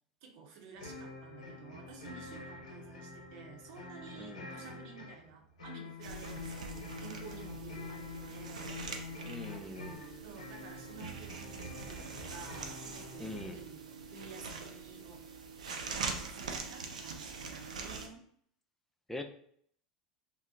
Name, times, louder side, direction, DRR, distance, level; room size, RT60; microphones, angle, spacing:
voice 1, 0.2-8.7 10.2-15.2 15.7-18.2, right 5 dB, 60° right, 1 dB, 0.8 m, -52 dB
sound 1, 0.8-13.5, left 3 dB, 80° left, 0.6 m, -47 dB
voice 2, 4.2-4.5 9.2-10.0 13.2-13.6 19.1-19.2, left 1 dB, 5° left, 6 dB, 0.4 m, -43 dB
sound 2, 6.0-18.1, right 4 dB, 80° right, 0.4 m, -43 dB
2.8 x 2.1 x 3.6 m, 0.64 s
hypercardioid pair, 85°, 4 cm